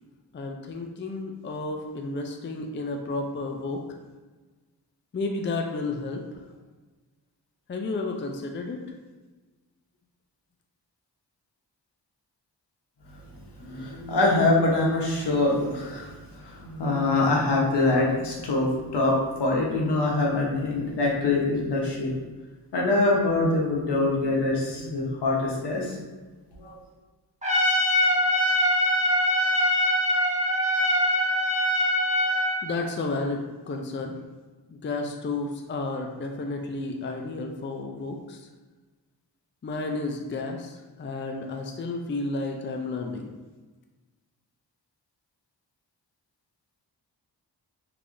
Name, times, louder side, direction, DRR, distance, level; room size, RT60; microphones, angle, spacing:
voice 1, 0.3-3.8 5.1-6.2 7.7-8.8 32.6-34.2 34.7-38.4 39.6-43.3, left 3 dB, 30° left, 3 dB, 0.4 m, -32 dB
voice 2, 13.6-22.1 22.7-26.0 26.5-26.8, left 2 dB, 75° left, -2 dB, 1.0 m, -24 dB
Trumpet, 27.4-32.7, left 1 dB, 15° right, 1.1 m, -23 dB
3.3 x 3.3 x 2.6 m, 1.3 s
cardioid pair, 55°, 41 cm